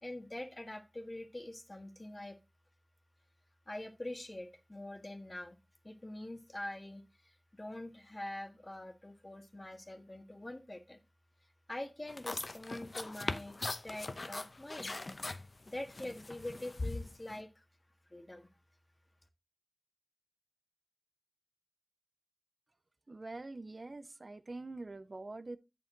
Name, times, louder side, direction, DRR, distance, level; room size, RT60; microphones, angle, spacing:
voice 1, 0.0-2.4 3.7-5.6 5.8-11.0 11.7-15.0 15.6-17.6 18.1-18.5, left 1 dB, 35° left, 1.6 m, -45 dB
sound 1, 12.1-17.4, left 2 dB, 65° left, 0.8 m, -41 dB
voice 2, 23.1-25.6, right 2 dB, 60° right, 0.6 m, -45 dB
8.3 x 7.7 x 3.9 m
wide cardioid pair, 60°, 0 cm